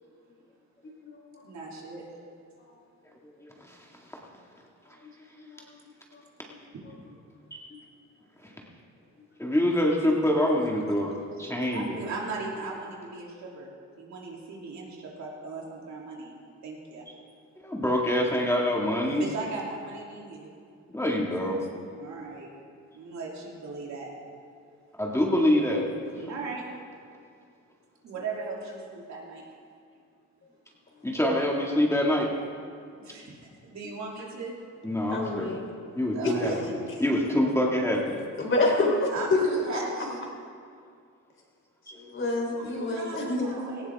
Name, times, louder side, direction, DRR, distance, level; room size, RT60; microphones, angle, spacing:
voice 1, 1.4-2.1 11.6-16.3 16.6-17.0 19.0-20.5 22.0-22.5 22.9-24.1 26.1-26.7 28.0-29.4 33.0-34.6 36.1-36.9 39.1-40.3 42.5-43.9, right 3 dB, 65° right, -3 dB, 3.0 m, -38 dB
voice 2, 3.4-3.8 7.5-7.6 9.4-12.0 17.6-19.2 20.9-21.7 24.9-25.9 31.0-32.3 34.8-35.6 36.0-38.2 41.9-42.0, left 1 dB, 10° left, -2 dB, 2.0 m, -26 dB
voice 3, 35.1-35.6 36.2-36.7 38.4-39.4 39.7-39.8 41.9-43.5, left 2 dB, 40° left, 0 dB, 3.7 m, -27 dB
18.0 x 15.0 x 3.6 m, 2.3 s
cardioid pair, 90°, 30 cm